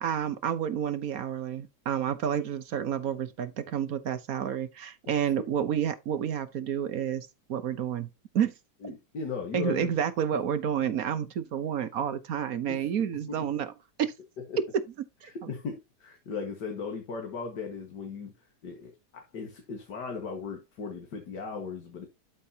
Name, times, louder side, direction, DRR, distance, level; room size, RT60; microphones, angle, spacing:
voice 1, 0.0-8.1 8.3-8.5 9.5-13.7 14.0-14.1 15.2-15.3, right 9 dB, 60° right, 1.2 m, -30 dB
voice 2, 8.8-10.0 12.7-12.9 13.3-13.5 14.4-14.6 15.2-22.1, left 5 dB, 70° left, 2.3 m, -37 dB
12.0 x 5.4 x 2.8 m
omnidirectional pair, 1.9 m